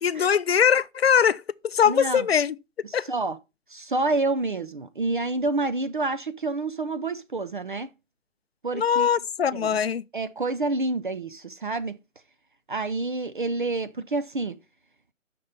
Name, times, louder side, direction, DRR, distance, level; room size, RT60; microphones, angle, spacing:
voice 1, 0.0-2.5 2.9-3.1 8.7-10.0, left 7 dB, 50° left, 0.5 m, -22 dB
voice 2, 1.9-2.3 2.8-3.4 3.7-7.9 8.6-9.1 9.5-9.8 10.1-12.0 12.7-14.6, right 3 dB, 40° right, 0.5 m, -28 dB
6.4 x 5.9 x 5.2 m
figure-of-eight pair, 155°, 39 cm